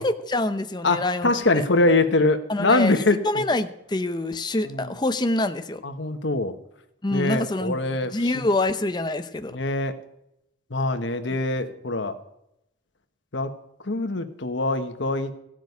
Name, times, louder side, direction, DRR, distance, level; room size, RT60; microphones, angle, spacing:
voice 1, 0.0-1.6 2.5-2.9 3.2-5.8 7.0-7.8 8.1-9.6, left 2 dB, 20° left, 9 dB, 0.7 m, -26 dB
voice 2, 0.8-3.4 4.6-4.9 5.8-6.5 7.1-8.5 9.5-10.0 10.7-12.1 13.3-13.5 13.8-15.3, left 2 dB, 65° left, 8 dB, 1.2 m, -23 dB
15.5 x 6.3 x 9.4 m, 0.81 s
head